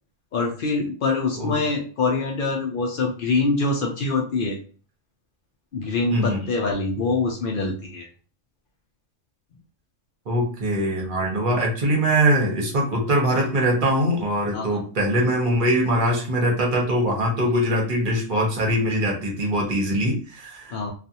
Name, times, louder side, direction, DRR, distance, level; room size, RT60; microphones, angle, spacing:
voice 1, 0.3-4.6 5.7-8.1 14.5-14.8 17.4-17.5 20.7-20.9, left 3 dB, 70° left, 1 dB, 0.5 m, -24 dB
voice 2, 10.3-20.9, right 1 dB, 45° right, -1 dB, 0.8 m, -22 dB
2.4 x 2.3 x 2.7 m, 0.39 s
omnidirectional pair, 1.4 m